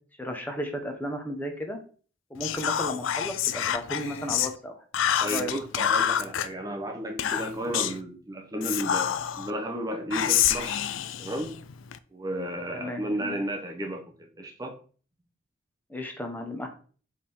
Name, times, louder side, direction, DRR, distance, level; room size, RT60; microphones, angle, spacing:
voice 1, 0.2-1.8 2.3-4.7 5.2-5.5 12.7-13.4 15.9-16.7, equal, 10° left, 3 dB, 0.9 m, -34 dB
Whispering, 2.4-4.5 4.9-6.5 7.2-8.0 8.6-9.5 10.1-12.0, left 10 dB, 70° left, 0.4 m, -27 dB
voice 2, 5.2-10.8 11.2-11.5 12.1-14.7, right 1 dB, 20° right, 2 dB, 0.7 m, -33 dB
4.9 x 3.5 x 5.4 m, 0.41 s
head